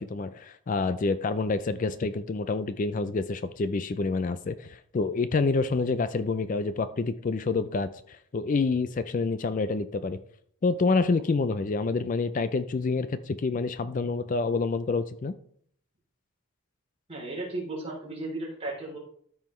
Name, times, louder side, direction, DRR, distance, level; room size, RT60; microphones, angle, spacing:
voice 1, 0.0-10.2 10.6-15.3, left 3 dB, 35° left, 12 dB, 0.3 m, -27 dB
voice 2, 17.1-19.0, right 2 dB, 25° right, -4 dB, 3.2 m, -35 dB
13.0 x 5.5 x 3.1 m, 0.62 s
head